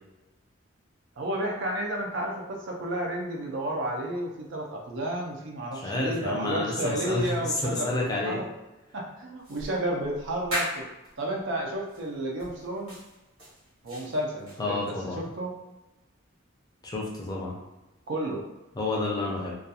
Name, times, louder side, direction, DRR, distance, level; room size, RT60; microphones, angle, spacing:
voice 1, 1.2-8.5 8.9-10.9 11.2-13.0 13.8-15.6 18.1-18.4, right 1 dB, 60° right, -1 dB, 0.4 m, -32 dB
voice 2, 5.8-7.4 7.6-8.4 14.6-15.2 16.8-17.5 18.8-19.5, left 2 dB, 20° left, -3 dB, 0.4 m, -30 dB
sound 1, 9.4-11.1 11.9-12.1 12.4-14.6, equal, 90° right, 1.0 m, -36 dB
2.3 x 2.3 x 2.7 m, 1.0 s
head